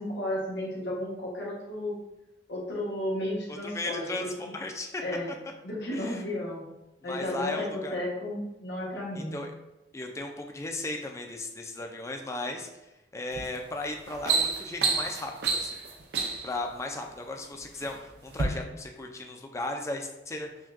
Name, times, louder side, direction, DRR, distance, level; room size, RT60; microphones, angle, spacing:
voice 1, 0.0-2.0 2.5-4.2 5.0-5.3 5.6-6.6 7.0-9.4, left 1 dB, 85° left, -4 dB, 1.1 m, -33 dB
voice 2, 3.5-5.0 5.9-6.2 7.0-8.0 9.1-9.5 9.9-12.7 13.1-15.8 16.4-20.5, left 2 dB, 15° left, 3 dB, 0.4 m, -36 dB
sound 1, 13.3-13.6 13.9-16.6 17.4-17.9 18.3-18.5, right 4 dB, 65° right, 0.5 m, -29 dB
5.8 x 2.2 x 2.5 m, 0.95 s
head